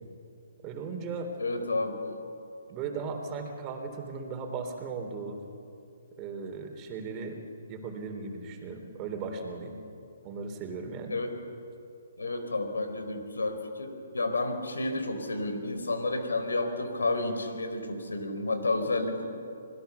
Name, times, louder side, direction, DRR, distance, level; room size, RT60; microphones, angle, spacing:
voice 1, 0.6-1.3 2.7-5.4 6.2-7.4 7.7-9.7 10.2-11.2, right 4 dB, 25° right, 4 dB, 3.7 m, -37 dB
voice 2, 1.4-2.0 7.0-7.1 11.1-11.3 12.2-19.2, left 2 dB, 90° left, 7 dB, 4.4 m, -31 dB
26.0 x 20.0 x 7.0 m, 2.6 s
hypercardioid pair, 145°, 0 cm